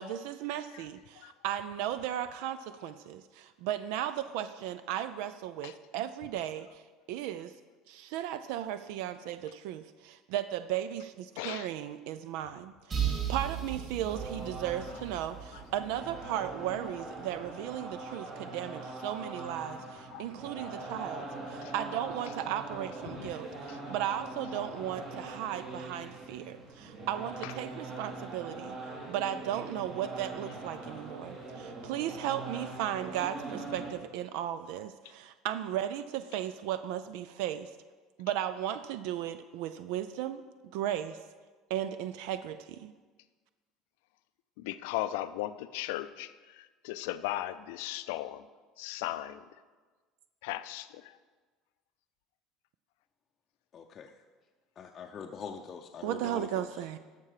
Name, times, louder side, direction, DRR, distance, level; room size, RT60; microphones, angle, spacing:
voice 1, 0.0-6.8 7.1-7.5 7.9-13.0 13.3-28.8 29.1-37.7 38.2-40.4 40.7-41.2 41.7-42.9 56.0-57.0, right 11 dB, 75° right, 0.4 m, -36 dB
voice 2, 11.4-11.7 15.5-15.6 18.0-18.1 20.1-20.3 20.6-20.8 21.6-21.7 23.1-23.3 27.4-27.5 44.6-48.4 48.8-49.4 50.4-51.2, left 15 dB, 85° left, 0.4 m, -37 dB
sound 1, 12.9-16.6, right 8 dB, 30° right, 3.6 m, -36 dB
sound 2, 14.1-33.9, right 2 dB, 55° right, 2.7 m, -42 dB
voice 3, 53.7-54.1 54.8-56.7, left 6 dB, 35° left, 0.6 m, -43 dB
13.0 x 5.7 x 4.9 m
cardioid pair, 130°, 0 cm